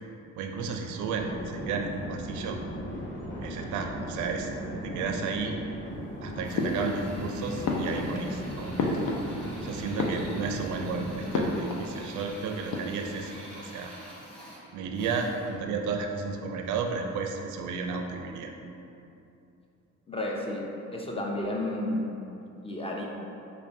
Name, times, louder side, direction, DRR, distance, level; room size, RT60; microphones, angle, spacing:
voice 1, 0.4-2.6 3.4-4.5 4.8-5.6 6.2-9.0 9.6-13.9 14.7-18.5, right 4 dB, 80° right, 4 dB, 0.5 m, -33 dB
sound 1, 1.1-11.5, equal, 40° left, 1.1 m, -38 dB
Drill, 6.4-15.7, equal, 5° left, 0.8 m, -48 dB
sound 2, 6.5-7.3 7.6-9.6 9.9-10.7 11.3-11.9 12.2-12.3 12.6-13.3, left 2 dB, 75° left, 0.5 m, -31 dB
voice 2, 20.1-20.6 20.9-22.1 22.6-23.0, left 1 dB, 20° left, -2 dB, 0.4 m, -31 dB
5.4 x 2.2 x 2.6 m, 2.7 s
cardioid pair, 90°, 30 cm